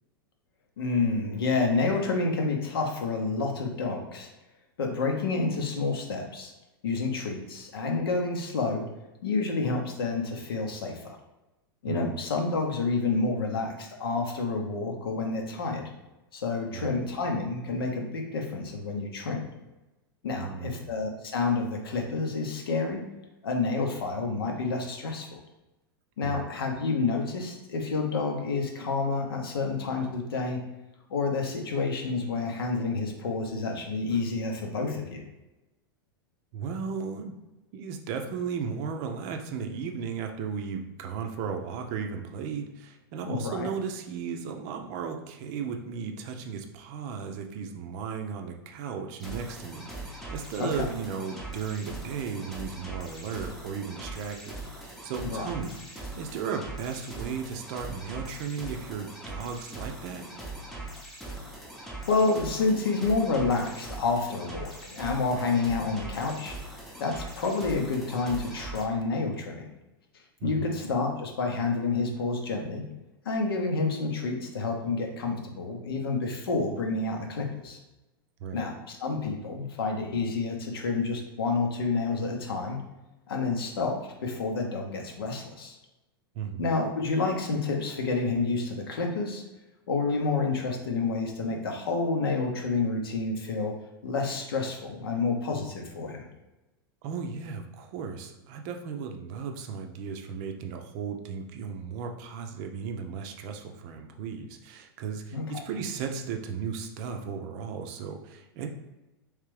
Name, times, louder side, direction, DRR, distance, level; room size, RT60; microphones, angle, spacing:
voice 1, 0.8-4.3 4.8-6.5 6.8-8.8 9.2-11.2 11.8-15.8 16.3-19.5 20.2-23.0 23.4-25.4 26.2-30.6 31.1-35.2 43.2-43.7 50.6-50.9 55.2-55.5 62.1-66.6 67.0-69.7 70.4-72.8 73.2-77.8 78.5-82.8 83.3-85.8 86.6-89.4 89.9-93.7 94.0-96.2 105.3-105.6, left 3 dB, 70° left, 2 dB, 0.8 m, -29 dB
voice 2, 16.7-17.0 20.4-21.0 26.2-26.5 36.5-37.4 37.7-60.3 70.4-70.7 78.4-78.6 86.3-86.6 97.0-108.7, right 6 dB, 45° right, 4 dB, 0.5 m, -35 dB
sound 1, 49.2-68.8, right 2 dB, ahead, 0.7 m, -41 dB
3.3 x 3.2 x 3.2 m, 1.0 s
figure-of-eight pair, 95°, 13 cm